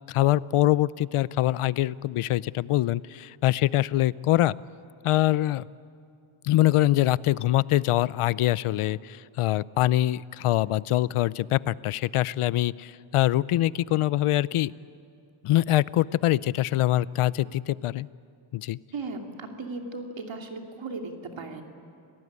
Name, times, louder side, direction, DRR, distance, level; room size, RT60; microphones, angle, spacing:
voice 1, 0.1-4.6 5.0-5.7 6.4-14.7 15.4-18.1 18.5-18.8, left 14 dB, 85° left, 20 dB, 0.6 m, -24 dB
voice 2, 18.9-21.6, right 3 dB, 65° right, 2 dB, 3.1 m, -36 dB
29.0 x 18.5 x 9.7 m, 2.5 s
cardioid pair, 85°, 50 cm